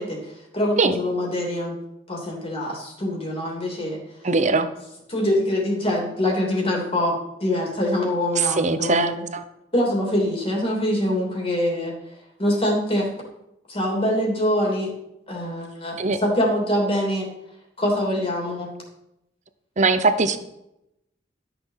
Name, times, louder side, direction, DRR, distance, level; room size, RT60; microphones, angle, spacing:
voice 1, 0.0-1.8 2.1-4.0 5.1-9.2 9.7-11.9 12.4-13.1 13.7-14.9 15.3-17.3 17.8-18.7, left 1 dB, 35° left, -1 dB, 3.1 m, -24 dB
voice 2, 4.2-4.7 8.4-9.4 16.0-16.2 19.8-20.4, right 3 dB, 45° right, 10 dB, 0.9 m, -21 dB
13.0 x 7.0 x 5.7 m, 0.85 s
head